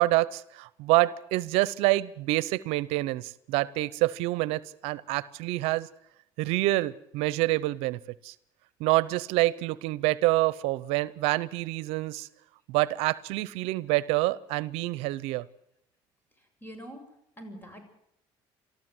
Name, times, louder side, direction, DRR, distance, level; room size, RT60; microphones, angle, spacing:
voice 1, 0.0-5.9 6.4-8.3 8.8-12.3 12.7-15.4, right 19 dB, 85° right, 20 dB, 0.7 m, -27 dB
voice 2, 16.6-17.0 17.4-17.8, equal, 20° left, 6 dB, 7.5 m, -43 dB
24.5 x 14.5 x 7.8 m, 0.76 s
supercardioid pair, 90°, 10 cm